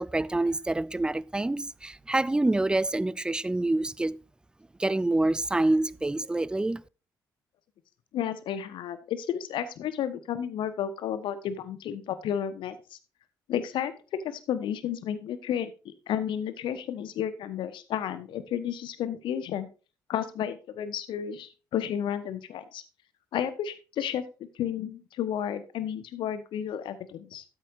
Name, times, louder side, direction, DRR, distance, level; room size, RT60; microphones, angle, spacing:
voice 1, 0.0-4.2 4.8-6.8, right 2 dB, 10° right, 0.4 m, -26 dB
voice 2, 8.1-13.0 13.5-13.9 14.2-19.7 20.1-22.8 23.3-24.2 24.5-27.4, left 9 dB, 55° left, 1.2 m, -32 dB
13.0 x 8.8 x 2.6 m
figure-of-eight pair, 45°, 10 cm